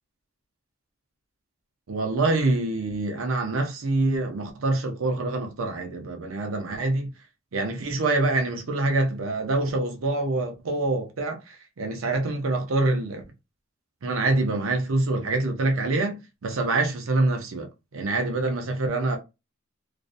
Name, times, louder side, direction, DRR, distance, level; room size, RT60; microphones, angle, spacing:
voice 1, 1.9-7.1 7.5-13.2 14.0-19.2, right 2 dB, 85° right, 0.6 m, -25 dB
2.4 x 2.1 x 2.5 m
head